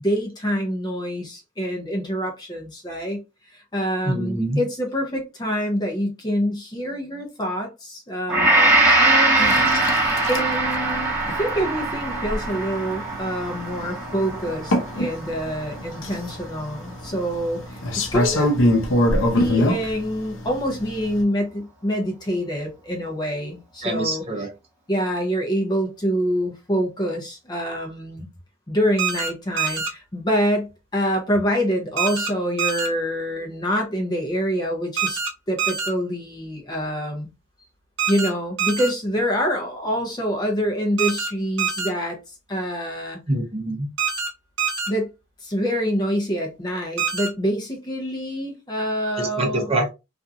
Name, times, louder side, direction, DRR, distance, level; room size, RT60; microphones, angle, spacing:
voice 1, 0.0-3.2 3.5-8.7 9.0-9.8 10.3-18.5 19.3-24.5 24.9-28.3 28.7-35.2 35.5-37.3 38.1-42.2 42.5-43.2 44.9-45.1 45.4-49.7, equal, 20° left, 0.6 m, -26 dB
voice 2, 4.0-4.6 9.4-9.6 23.8-24.5 43.3-43.9 49.2-49.9, right 1 dB, 30° right, 0.7 m, -25 dB
Gong, 8.3-16.6 17.1-17.2, right 2 dB, 15° right, 1.1 m, -22 dB
sound 1, 9.4-21.2, left 1 dB, 70° left, 0.7 m, -25 dB
sound 2, 29.0-29.3 29.6-29.9 32.0-32.3 32.6-32.9 35.0-35.3 35.6-35.9 38.0-38.3 38.6-38.9 41.0-41.3 41.6-41.9 44.0-44.3 44.6-44.9 47.0-47.3, right 6 dB, 60° right, 0.8 m, -25 dB
2.8 x 2.4 x 2.3 m
head